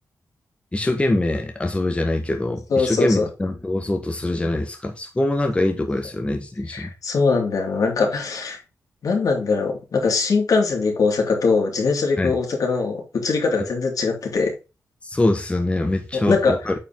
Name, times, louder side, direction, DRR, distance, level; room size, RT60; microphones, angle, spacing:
voice 1, 0.7-6.9 12.2-12.3 15.0-16.7, left 1 dB, 20° left, 1.5 m, -23 dB
voice 2, 2.7-3.3 6.7-8.6 9.0-14.5 16.1-16.5, left 4 dB, 70° left, 3.6 m, -21 dB
9.3 x 5.4 x 3.7 m
wide cardioid pair, 105°, 6 cm